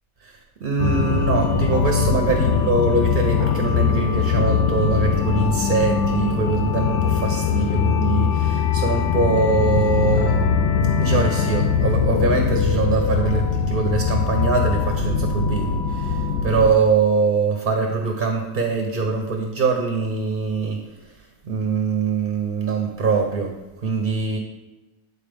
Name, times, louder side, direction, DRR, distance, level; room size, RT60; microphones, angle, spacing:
voice 1, 0.2-10.4 11.0-20.8 21.4-24.4, right 4 dB, 50° right, 3 dB, 0.7 m, -23 dB
sound 1, 0.8-16.7, left 6 dB, 65° left, 0.7 m, -21 dB
8.6 x 4.1 x 3.4 m, 1.1 s
omnidirectional pair, 1.3 m